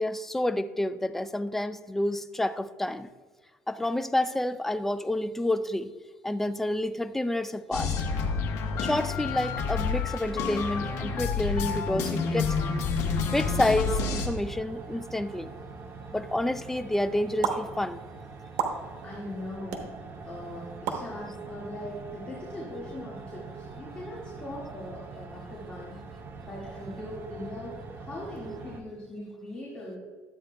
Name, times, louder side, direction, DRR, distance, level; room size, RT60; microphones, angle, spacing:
voice 1, 0.0-3.1 3.7-5.9 6.2-7.9 8.8-12.5 13.2-15.5 16.1-18.0, left 1 dB, 5° left, 11 dB, 0.3 m, -29 dB
sound 1, 7.7-14.3, left 5 dB, 65° left, 1.2 m, -29 dB
sound 2, 13.5-28.8, right 4 dB, 35° right, 0.7 m, -44 dB
sound 3, 17.4-17.5 18.6-18.7 19.7-19.8 20.9-21.0, right 7 dB, 85° right, 1.0 m, -27 dB
voice 2, 19.0-19.9 20.2-26.0 26.4-30.0, left 1 dB, 20° left, -6 dB, 2.0 m, -40 dB
12.0 x 8.4 x 2.3 m, 1.4 s
cardioid pair, 125°, 6 cm